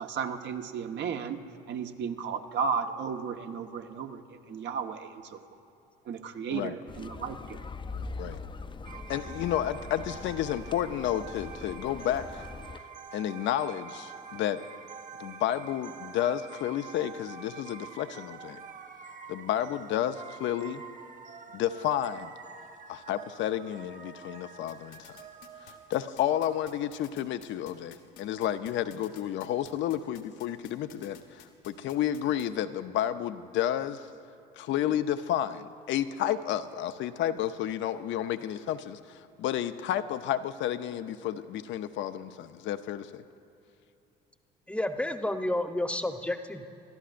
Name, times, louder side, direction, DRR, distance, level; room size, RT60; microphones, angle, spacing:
voice 1, 0.0-1.4 1.7-4.2 4.5-5.4 6.0-7.6, right 6 dB, 55° right, 5 dB, 1.2 m, -34 dB
sound 1, 6.9-12.8, left 3 dB, 25° left, 0.6 m, -42 dB
sound 2, 8.8-27.2, right 6 dB, 35° right, 1.3 m, -47 dB
voice 2, 9.1-12.4 13.1-14.7 15.2-18.6 19.3-20.8 21.5-22.3 22.9-25.2 25.6-34.0 34.6-43.2, left 11 dB, 60° left, 10 dB, 0.7 m, -31 dB
sound 3, 24.7-32.5, left 11 dB, 85° left, 1.4 m, -52 dB
voice 3, 44.7-46.7, left 1 dB, 5° left, 7 dB, 1.0 m, -31 dB
27.0 x 13.0 x 2.6 m, 2.8 s
hypercardioid pair, 70°, 21 cm